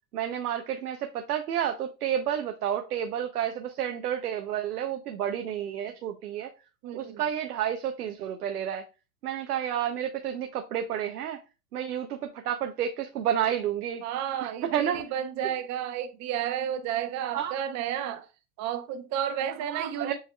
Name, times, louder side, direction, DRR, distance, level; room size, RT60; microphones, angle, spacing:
voice 1, 0.1-6.5 6.9-8.8 9.2-11.4 11.7-14.0 14.7-15.0 17.3-17.6 19.7-20.1, right 10 dB, 85° right, 0.7 m, -30 dB
voice 2, 6.8-7.2 14.0-18.3 18.6-20.1, right 9 dB, 40° right, 0.8 m, -32 dB
7.4 x 2.8 x 2.3 m
hypercardioid pair, 100°, 45 cm